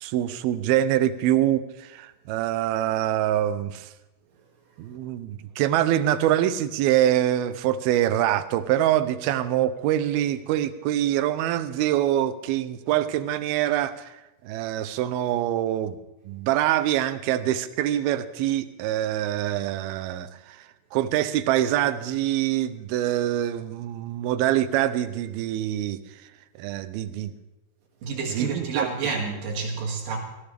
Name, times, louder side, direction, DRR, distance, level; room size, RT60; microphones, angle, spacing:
voice 1, 0.0-3.9 4.8-16.0 16.3-20.7 20.9-26.0 26.6-27.3 28.3-28.9, right 12 dB, 85° right, 2.6 m, -25 dB
voice 2, 28.0-30.2, right 4 dB, 65° right, 3.9 m, -29 dB
18.0 x 16.0 x 3.4 m
omnidirectional pair, 4.3 m